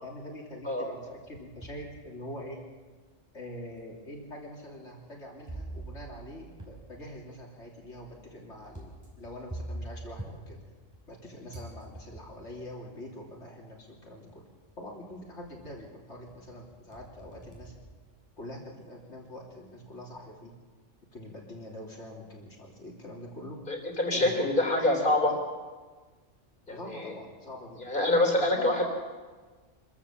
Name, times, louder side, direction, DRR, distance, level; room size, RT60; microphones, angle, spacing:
voice 1, 0.0-2.6 3.3-8.9 9.2-10.6 11.1-14.4 14.8-17.7 18.4-20.5 21.1-23.6 24.1-24.7 24.9-25.4 26.7-27.8 28.4-28.8, left 1 dB, 65° left, -1 dB, 3.5 m, -44 dB
sound 1, 1.0-1.9 2.5-2.6 3.5-3.6 5.5-11.2 11.5-12.5 13.7-13.8 14.3-14.7 15.1-15.9 16.3-18.6, right 1 dB, 15° right, 4.3 m, -45 dB
voice 2, 23.7-25.3 26.7-27.1 27.8-28.8, left 1 dB, 40° left, 2 dB, 3.7 m, -26 dB
25.0 x 14.0 x 7.4 m, 1.4 s
omnidirectional pair, 1.3 m